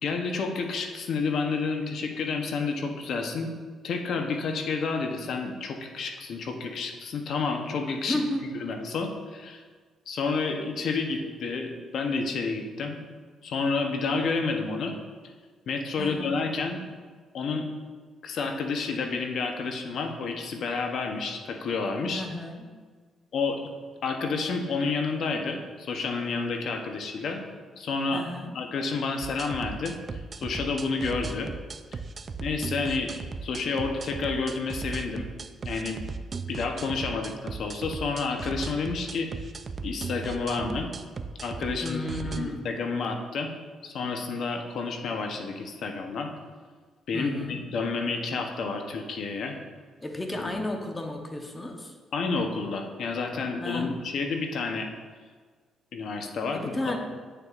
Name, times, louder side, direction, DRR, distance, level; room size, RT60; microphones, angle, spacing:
voice 1, 0.0-3.5 3.8-8.2 8.5-9.6 10.1-13.0 13.4-14.9 15.7-16.8 17.3-17.7 18.2-22.2 23.3-23.6 24.0-27.4 27.8-28.2 28.5-31.5 31.9-32.0 32.4-33.2 33.4-35.3 35.6-36.0 36.5-39.3 39.8-40.9 41.4-42.0 42.4-43.5 43.8-46.3 47.1-49.6 50.3-50.4 52.1-54.9 55.9-56.9, left 4 dB, 65° left, 4 dB, 0.8 m, -30 dB
voice 2, 8.1-8.5 16.0-16.4 22.1-22.8 28.1-28.6 41.8-42.7 47.1-47.7 50.0-51.9 53.6-54.1 56.5-57.0, left 1 dB, 20° left, 3 dB, 1.0 m, -33 dB
sound 1, 29.2-42.4, right 4 dB, 40° right, 0.4 m, -37 dB
8.7 x 6.7 x 2.5 m, 1.5 s
cardioid pair, 90°, 0 cm